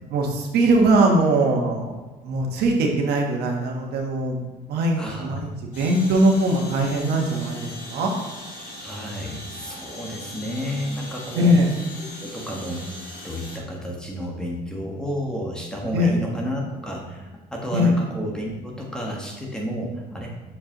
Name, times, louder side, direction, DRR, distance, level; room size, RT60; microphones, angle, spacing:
voice 1, 0.1-1.9 2.2-4.4 4.7-8.1 11.4-11.7 15.9-16.1 17.7-17.9, right 1 dB, 75° right, 1 dB, 1.2 m, -21 dB
voice 2, 5.0-5.4 8.6-11.5 12.2-20.5, equal, 5° left, -2 dB, 1.4 m, -31 dB
sound 1, 5.7-13.6, left 1 dB, 50° left, 2.1 m, -39 dB
6.7 x 5.2 x 3.0 m, 1.2 s
cardioid pair, 110°, 17 cm